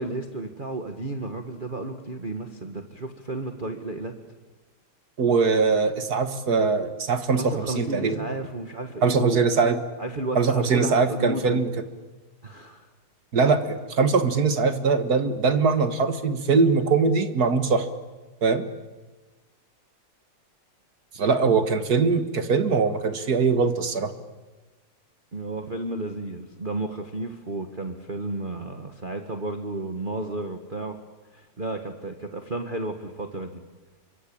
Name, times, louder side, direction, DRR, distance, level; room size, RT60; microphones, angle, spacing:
voice 1, 0.0-4.2 7.3-9.5 10.0-11.7 12.4-12.9 25.3-31.0 31.3-33.6, right 2 dB, 25° right, 6 dB, 1.5 m, -33 dB
voice 2, 5.2-8.2 9.0-9.8 10.4-11.7 13.3-17.9 18.4-18.7 21.2-24.1, right 4 dB, 50° right, 9 dB, 2.0 m, -22 dB
27.5 x 24.5 x 8.8 m, 1.2 s
omnidirectional pair, 2.3 m